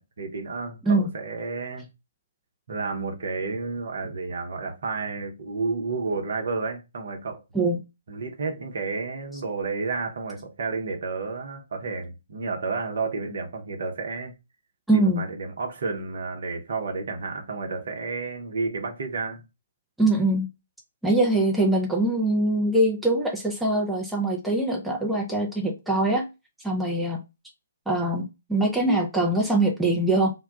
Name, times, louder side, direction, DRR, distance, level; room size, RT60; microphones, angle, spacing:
voice 1, 0.0-1.9 2.7-7.4 8.1-14.3 14.9-19.4, right 4 dB, 55° right, 0.8 m, -31 dB
voice 2, 14.9-15.2 20.0-20.5 21.0-26.3 26.6-27.2 27.9-30.3, right 2 dB, 5° right, 0.5 m, -23 dB
2.2 x 2.2 x 3.6 m
figure-of-eight pair, 130°, 0 cm